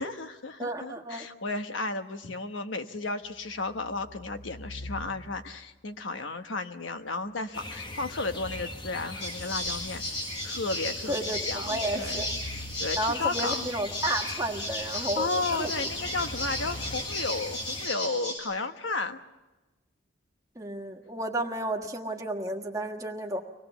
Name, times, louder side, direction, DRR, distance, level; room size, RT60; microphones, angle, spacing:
voice 1, 0.0-10.0 10.4-11.2 11.5-13.7 14.8-19.2, left 3 dB, 80° left, 8 dB, 1.2 m, -33 dB
voice 2, 0.6-1.3 11.1-12.4 13.0-15.9 20.5-23.4, right 1 dB, 15° right, 2 dB, 1.5 m, -32 dB
sound 1, 3.3-5.6 7.7-10.3 11.0-13.4 15.5-17.0, left 1 dB, 40° left, 3.2 m, -45 dB
sound 2, 7.5-17.9, left 2 dB, 25° left, 0.9 m, -40 dB
sound 3, 9.2-18.4, left 1 dB, 65° left, 8.0 m, -35 dB
24.5 x 19.0 x 7.0 m, 1.1 s
head